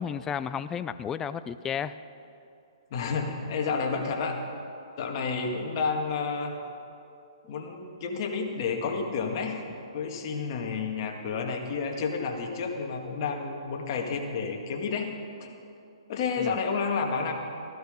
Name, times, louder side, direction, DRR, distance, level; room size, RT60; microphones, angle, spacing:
voice 1, 0.0-2.0 7.4-7.5 16.4-16.5, left 7 dB, 15° left, 13 dB, 0.3 m, -33 dB
voice 2, 2.9-4.4 5.0-6.6 7.5-9.6 9.9-15.1 15.4-15.5 16.1-17.3, left 5 dB, 45° left, 2 dB, 1.9 m, -30 dB
14.0 x 12.5 x 5.2 m, 2.6 s
hypercardioid pair, 145°, 3 cm